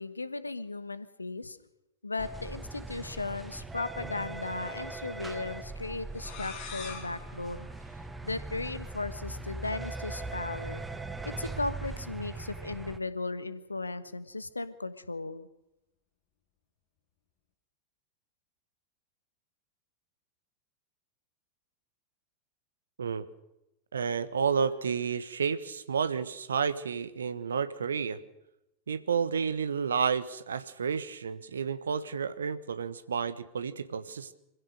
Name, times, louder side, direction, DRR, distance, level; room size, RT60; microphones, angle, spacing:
voice 1, 0.0-1.6 2.0-7.7 8.2-10.8 11.2-15.5, left 3 dB, 80° left, 14 dB, 1.2 m, -36 dB
sound 1, 2.2-13.0, right 3 dB, 10° right, 1.5 m, -40 dB
sound 2, 6.1-8.7, left 6 dB, 40° left, 5.1 m, -45 dB
voice 2, 23.9-28.2 28.9-34.3, right 6 dB, 70° right, 14 dB, 1.3 m, -31 dB
25.5 x 16.0 x 6.6 m, 0.91 s
figure-of-eight pair, 90°, 0 cm